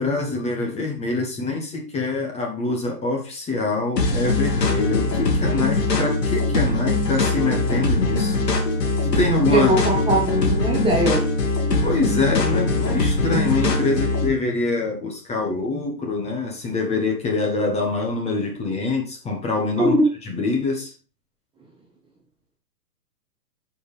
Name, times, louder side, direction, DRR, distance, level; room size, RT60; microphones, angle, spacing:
voice 1, 0.0-8.4 9.0-9.8 11.8-20.0 20.2-20.9, left 3 dB, 15° left, 1 dB, 1.2 m, -25 dB
sound 1, 4.0-14.3, left 3 dB, 90° left, 2.1 m, -22 dB
voice 2, 9.5-11.2 19.8-20.0, right 1 dB, 10° right, -1 dB, 1.1 m, -20 dB
9.1 x 4.8 x 3.4 m, 0.35 s
hypercardioid pair, 135°, 47 cm